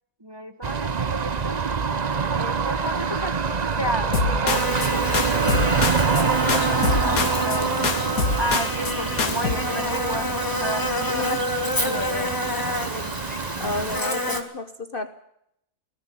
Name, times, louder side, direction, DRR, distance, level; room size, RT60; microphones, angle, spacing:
voice 1, 0.2-1.6 2.3-7.7 8.4-10.3 10.6-11.3 11.8-12.5, equal, 15° right, 7 dB, 1.5 m, -32 dB
sound 1, 0.6-14.0, right 5 dB, 35° right, 0.8 m, -26 dB
sound 2, 4.1-4.9 5.1-6.2 6.5-7.6 7.8-8.9 9.2-9.5, left 4 dB, 65° left, 2.1 m, -25 dB
Buzz, 4.5-14.4, equal, 15° left, 2.0 m, -28 dB
voice 2, 13.6-15.1, left 3 dB, 40° left, 9 dB, 1.1 m, -31 dB
19.0 x 14.0 x 9.9 m, 0.75 s
omnidirectional pair, 1.6 m